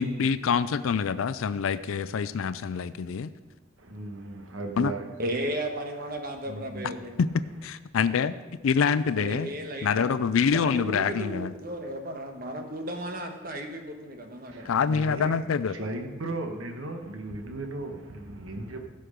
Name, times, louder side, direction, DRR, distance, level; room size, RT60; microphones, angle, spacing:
voice 1, 0.0-3.3 4.8-4.9 7.2-7.3 7.6-8.4 8.6-9.5 9.8-11.5 14.7-15.8, left 6 dB, 80° left, 14 dB, 0.4 m, -26 dB
voice 2, 3.8-5.1 6.5-6.9 14.5-15.3 15.7-18.9, right 2 dB, 80° right, 5 dB, 1.3 m, -36 dB
voice 3, 5.2-7.1 9.1-10.2 10.5-14.7, right 1 dB, 45° right, 4 dB, 1.2 m, -34 dB
16.0 x 6.3 x 5.1 m, 1.2 s
head